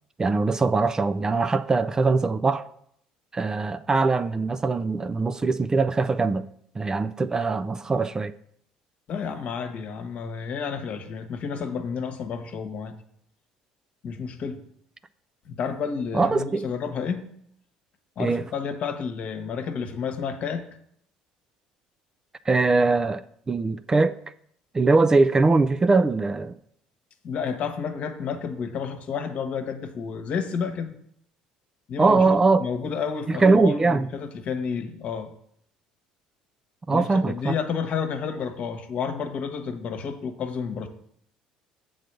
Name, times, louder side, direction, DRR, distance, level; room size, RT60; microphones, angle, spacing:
voice 1, 0.2-2.7 3.3-6.5 6.8-8.3 16.1-16.7 18.2-18.4 22.5-24.2 24.7-26.5 32.0-32.6 33.3-34.1 36.9-37.5, right 3 dB, 25° right, 0.4 m, -21 dB
voice 2, 9.1-13.0 14.0-14.6 15.4-17.3 18.2-20.6 27.2-31.0 31.9-35.3 36.9-40.9, left 6 dB, 55° left, 1.1 m, -31 dB
7.5 x 3.9 x 6.6 m
hypercardioid pair, 70°, 3 cm